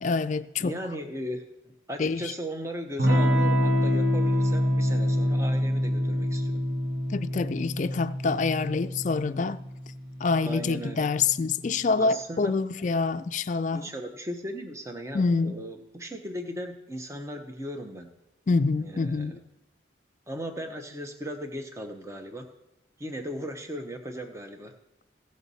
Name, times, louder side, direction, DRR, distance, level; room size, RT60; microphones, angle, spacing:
voice 1, 0.0-0.7 2.0-2.3 7.1-9.6 10.2-13.9 15.1-15.6 18.5-19.4, left 4 dB, 40° left, 0.3 m, -26 dB
voice 2, 0.6-6.6 10.4-11.1 12.0-12.5 13.7-18.1 18.8-19.4 20.3-22.5 23.0-24.7, equal, 15° right, 0.7 m, -37 dB
Electric guitar / Strum, 3.0-11.3, equal, 65° right, 1.1 m, -26 dB
16.5 x 6.3 x 4.1 m
head